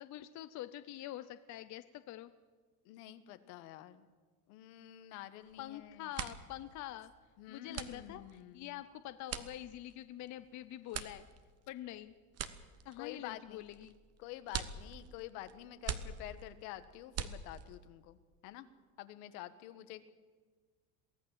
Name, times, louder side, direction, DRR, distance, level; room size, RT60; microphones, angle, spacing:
voice 1, 0.0-2.3 5.6-7.1 7.5-11.3 11.7-12.2 12.8-14.0, left 13 dB, 40° left, 12 dB, 0.7 m, -46 dB
voice 2, 2.8-4.1 4.5-6.1 7.4-8.8 13.0-13.6 14.2-18.2 18.4-18.7 19.0-20.1, left 13 dB, 75° left, 11 dB, 1.6 m, -48 dB
sound 1, 5.4-5.7 6.0-17.9, right 8 dB, 35° right, 1.2 m, -44 dB
23.0 x 15.0 x 7.5 m, 1.4 s
supercardioid pair, 130°, 44 cm